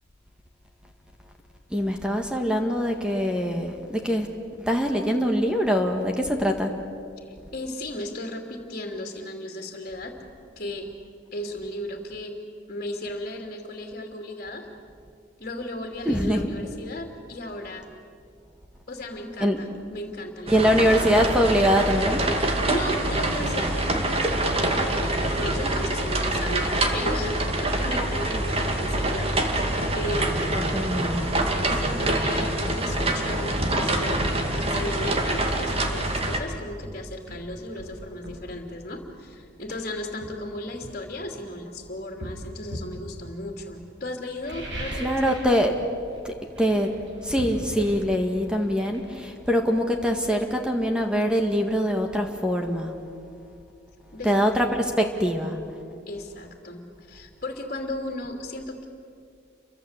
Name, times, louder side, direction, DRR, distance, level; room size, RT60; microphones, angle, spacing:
voice 1, 1.7-4.3 4.6-6.7 16.1-16.5 19.4-19.6 20.5-22.3 30.6-31.5 45.0-45.7 46.2-46.9 47.2-52.9 54.2-55.6, equal, 5° right, 3 dB, 1.8 m, -23 dB
voice 2, 7.2-10.2 10.6-10.9 11.3-12.4 12.7-14.7 15.4-17.9 18.9-20.9 22.4-30.5 31.6-34.2 34.6-45.2 54.1-54.8 56.1-58.9, left 1 dB, 45° left, 2 dB, 2.9 m, -35 dB
sound 1, 20.5-36.4, right 1 dB, 30° right, 2.4 m, -25 dB
sound 2, 33.6-33.8 34.2-34.4 36.3-36.4 36.8-38.5 39.5-39.7 40.2-41.6 42.2-43.0 44.3-45.6 45.8-46.2 46.5-50.1 50.4-50.5, equal, 65° right, 7.4 m, -38 dB
29.5 x 24.0 x 8.2 m, 2.3 s
head